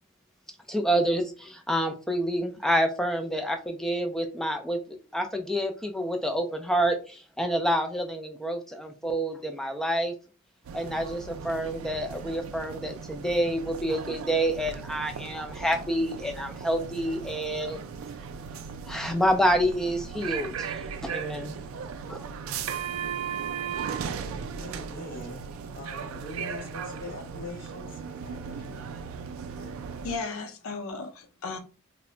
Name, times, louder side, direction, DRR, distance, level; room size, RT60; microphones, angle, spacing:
voice 1, 0.7-4.8 5.1-10.1 10.7-17.9 18.9-21.6 22.1-22.3, equal, ahead, 0.3 m, -28 dB
sound 1, 10.6-30.2, right 6 dB, 80° right, 0.3 m, -37 dB
voice 2, 24.6-29.0 29.5-29.7, left 1 dB, 45° left, 1.1 m, -42 dB
voice 3, 30.0-31.6, left 4 dB, 85° left, 0.5 m, -35 dB
2.1 x 2.1 x 3.6 m
head